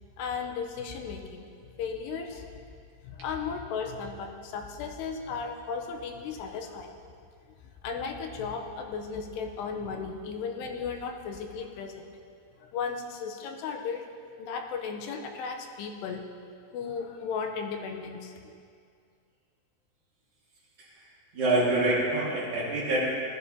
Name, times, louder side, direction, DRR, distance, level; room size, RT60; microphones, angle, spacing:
voice 1, 0.2-1.5 1.8-2.5 3.0-6.9 7.8-12.0 12.6-14.0 14.4-16.2 16.7-18.3, left 5 dB, 85° left, 4 dB, 2.8 m, -35 dB
voice 2, 21.3-23.1, right 1 dB, 55° right, -5 dB, 3.0 m, -26 dB
17.0 x 13.0 x 2.8 m, 2.2 s
omnidirectional pair, 4.9 m